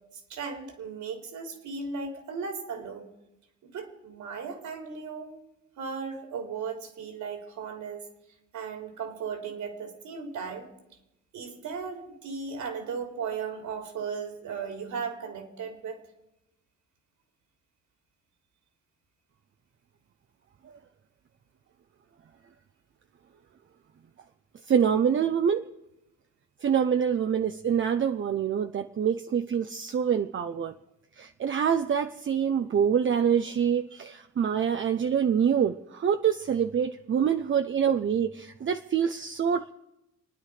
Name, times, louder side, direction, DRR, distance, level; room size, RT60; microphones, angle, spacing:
voice 1, 0.3-3.1 3.6-5.3 5.8-8.0 8.5-10.7 11.3-16.0, right 5 dB, 75° right, 3 dB, 3.6 m, -36 dB
voice 2, 24.7-25.7 26.6-30.7 31.2-39.7, right 8 dB, 40° right, 7 dB, 0.7 m, -26 dB
28.0 x 9.8 x 5.0 m, 0.90 s
cardioid pair, 90°, 30 cm